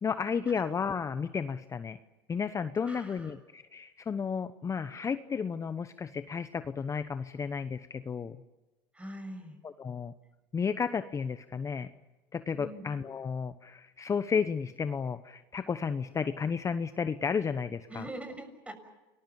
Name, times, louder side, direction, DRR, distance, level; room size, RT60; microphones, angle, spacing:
voice 1, 0.0-2.0 2.3-8.4 9.6-10.1 10.5-11.9 12.3-18.1, left 6 dB, 25° left, 11 dB, 1.0 m, -33 dB
voice 2, 2.8-3.3 8.9-9.6 12.5-12.9 17.9-18.7, right 1 dB, 10° right, 8 dB, 6.6 m, -43 dB
29.0 x 21.0 x 7.1 m, 1.1 s
supercardioid pair, 90°, 11 cm